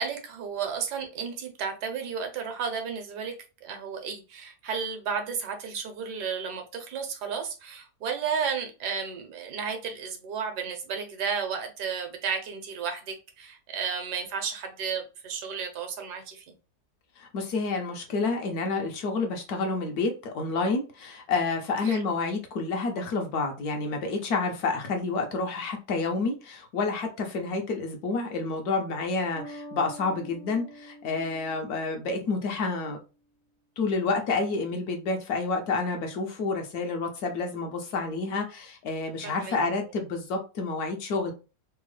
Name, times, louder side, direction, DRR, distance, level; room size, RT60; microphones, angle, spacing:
voice 1, 0.0-3.3 3.6-16.5 21.8-22.1 39.2-39.6, right 6 dB, 75° right, 1.2 m, -33 dB
voice 2, 17.2-33.0 33.8-41.3, left 3 dB, 70° left, 1.1 m, -29 dB
Bass guitar, 29.3-32.9, equal, 50° left, 0.3 m, -46 dB
3.4 x 2.0 x 3.1 m
omnidirectional pair, 1.8 m